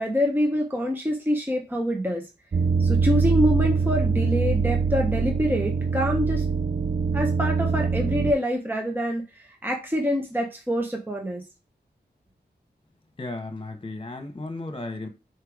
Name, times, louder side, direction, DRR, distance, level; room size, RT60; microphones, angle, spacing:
voice 1, 0.0-2.2 2.8-6.4 7.1-11.4, equal, 10° right, 1.2 m, -26 dB
sound 1, 2.5-8.3, right 5 dB, 40° right, 0.5 m, -23 dB
voice 2, 13.2-15.1, left 2 dB, 30° left, 1.5 m, -34 dB
4.7 x 4.5 x 5.0 m
wide cardioid pair, 75°, 18 cm